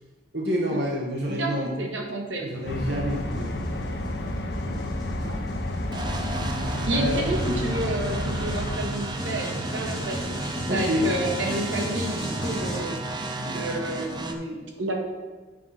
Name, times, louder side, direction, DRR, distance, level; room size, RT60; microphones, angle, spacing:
voice 1, 0.3-1.7 2.4-4.8 5.2-5.4 6.9-7.3 10.7-11.1, equal, 65° right, -2 dB, 1.2 m, -29 dB
voice 2, 1.3-2.5 6.9-10.2 10.7-15.0, right 1 dB, 85° right, 1 dB, 1.5 m, -30 dB
sound 1, 2.5-12.8, left 1 dB, 5° left, 2.0 m, -36 dB
sound 2, 2.7-8.8, left 1 dB, 60° left, 0.7 m, -30 dB
sound 3, 5.9-14.3, right 2 dB, 25° right, 0.6 m, -33 dB
7.5 x 5.5 x 5.7 m, 1.3 s
head